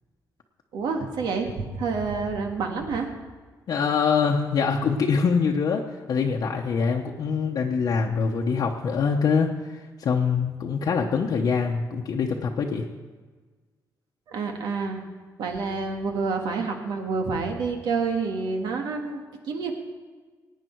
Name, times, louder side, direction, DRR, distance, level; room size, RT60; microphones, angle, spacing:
voice 1, 0.7-3.1 14.3-15.0 15.4-19.7, right 4 dB, 85° right, 3 dB, 1.8 m, -28 dB
voice 2, 3.7-5.8 6.1-12.9, left 5 dB, 60° left, 0 dB, 0.9 m, -24 dB
18.0 x 9.2 x 4.6 m, 1.4 s
cardioid pair, 115°, 7 cm